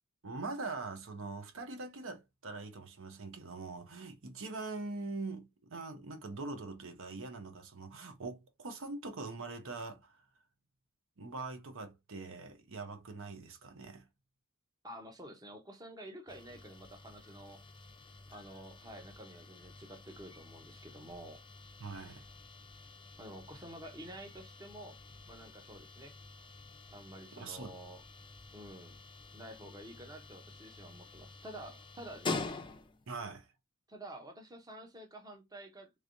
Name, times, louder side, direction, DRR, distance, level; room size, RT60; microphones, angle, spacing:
voice 1, 0.2-10.3 11.2-14.1 21.8-22.2 27.3-27.8 33.1-33.5, right 3 dB, 60° right, 0.8 m, -43 dB
voice 2, 14.8-17.6 18.3-21.4 23.2-25.0 25.3-26.2 26.9-28.0 28.5-29.0 29.3-32.5 33.9-35.9, right 1 dB, 15° right, 0.7 m, -50 dB
sound 1, 16.3-33.1, left 3 dB, 20° left, 0.5 m, -47 dB
3.3 x 3.2 x 2.6 m
head